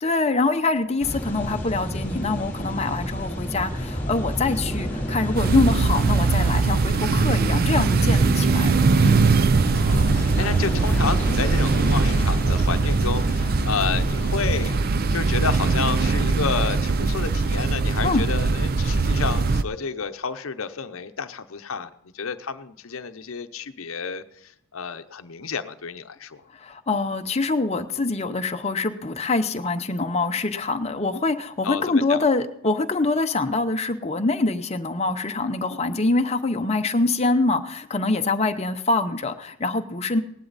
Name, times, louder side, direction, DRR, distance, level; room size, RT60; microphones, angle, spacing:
voice 1, 0.0-9.3 18.0-18.2 26.5-40.2, left 3 dB, 30° left, 7 dB, 0.7 m, -24 dB
sound 1, 1.0-14.8, equal, 10° left, 3.0 m, -31 dB
sound 2, 5.4-19.6, right 4 dB, 45° right, 0.5 m, -21 dB
voice 2, 9.7-14.7 15.1-26.4 31.6-32.2, left 6 dB, 75° left, 9 dB, 0.7 m, -30 dB
18.0 x 11.0 x 4.1 m, 0.75 s
head